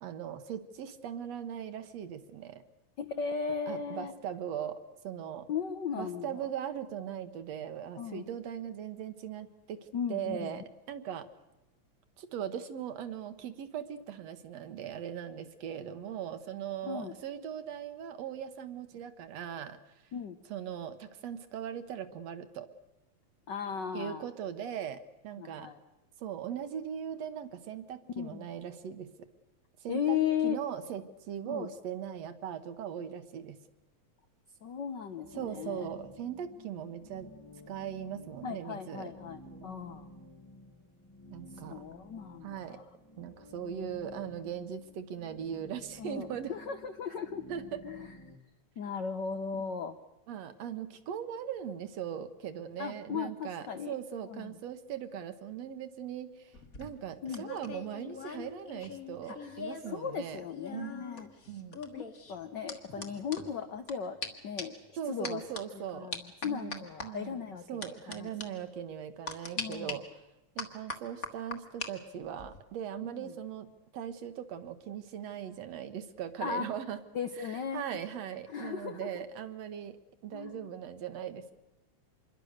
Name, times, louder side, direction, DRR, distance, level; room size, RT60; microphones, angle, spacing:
voice 1, 0.0-2.6 3.7-5.5 6.0-11.3 12.2-19.8 20.5-22.7 23.9-25.7 26.2-29.3 29.8-33.6 35.3-37.3 37.7-39.1 39.5-39.7 41.3-41.8 42.4-42.8 43.2-46.5 47.5-47.8 49.5-49.6 50.3-60.4 60.7-61.1 61.5-61.8 63.0-63.1 65.0-66.1 66.4-67.4 67.7-70.2 70.6-73.7 73.9-77.0 77.4-81.5, right 9 dB, 65° right, 10 dB, 2.2 m, -39 dB
voice 2, 3.0-4.1 5.5-6.4 8.0-8.3 9.9-10.6 16.8-17.1 20.1-20.4 23.5-24.3 25.4-25.8 28.2-28.5 29.9-30.6 31.5-31.7 34.6-35.9 38.4-40.1 41.7-42.8 46.0-47.4 47.8-48.1 48.8-50.0 52.8-54.0 54.3-54.5 57.2-57.5 59.4-59.5 59.9-61.3 61.9-65.4 65.7-68.3 69.6-70.0 73.0-73.3 76.4-76.7 77.1-77.8 78.5-79.1 80.3-80.7, left 7 dB, 75° left, 8 dB, 1.0 m, -36 dB
sound 1, 35.2-48.4, left 1 dB, 20° left, 0.6 m, -53 dB
sound 2, 56.5-60.0 60.2-63.9 64.2-64.3 64.6-64.8 65.2-65.6 66.1-67.1 67.8-68.2 68.4-68.5 69.3-69.9 70.6-71.9 72.2-72.6, left 4 dB, 35° left, 1.7 m, -41 dB
26.5 x 22.0 x 6.6 m, 0.96 s
omnidirectional pair, 3.3 m